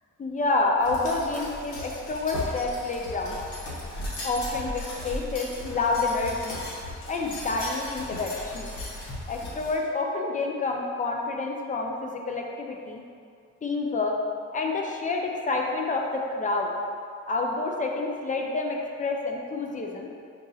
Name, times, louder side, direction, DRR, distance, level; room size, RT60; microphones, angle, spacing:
voice 1, 0.2-3.4 4.2-6.6 7.1-8.7 9.3-13.0 13.6-14.2 14.5-16.7 17.3-20.1, left 3 dB, 25° left, 1 dB, 0.5 m, -28 dB
sound 1, 0.8-9.8, left 1 dB, 75° left, 1.1 m, -37 dB
6.1 x 2.6 x 2.4 m, 2.3 s
cardioid pair, 90°, 30 cm